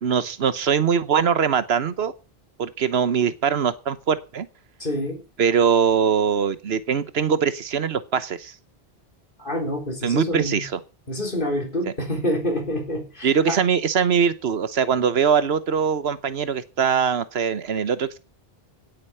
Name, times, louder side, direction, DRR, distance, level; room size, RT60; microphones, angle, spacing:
voice 1, 0.0-2.1 2.6-4.5 5.4-8.5 10.0-10.8 13.2-18.2, right 7 dB, 80° right, 14 dB, 1.2 m, -22 dB
voice 2, 4.8-5.2 9.4-10.7 11.1-13.6, left 1 dB, 55° left, 2 dB, 4.1 m, -27 dB
17.0 x 8.1 x 5.6 m, 0.34 s
omnidirectional pair, 1.0 m